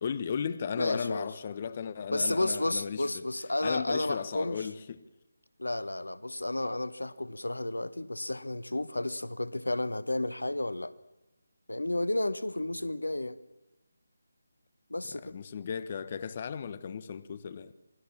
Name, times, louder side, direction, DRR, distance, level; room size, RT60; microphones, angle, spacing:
voice 1, 0.0-3.3 3.6-5.0 15.2-17.7, left 7 dB, 35° left, 1.2 m, -35 dB
voice 2, 0.8-1.3 2.1-4.6 5.6-10.9 11.7-13.4 14.9-15.4, left 1 dB, 85° left, 1.2 m, -32 dB
27.5 x 21.0 x 7.4 m
figure-of-eight pair, 155°, 0 cm